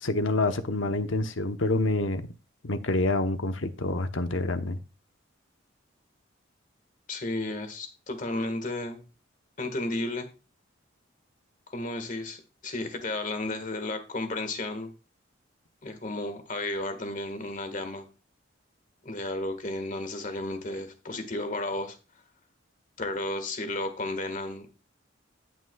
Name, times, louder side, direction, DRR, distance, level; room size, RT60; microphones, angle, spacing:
voice 1, 0.0-2.3 2.6-4.8, left 2 dB, 75° left, 0.9 m, -27 dB
voice 2, 7.1-9.0 9.6-10.3 11.7-14.9 15.8-18.1 19.0-22.0 23.0-24.7, left 2 dB, 40° left, 1.6 m, -33 dB
17.0 x 6.0 x 2.3 m
head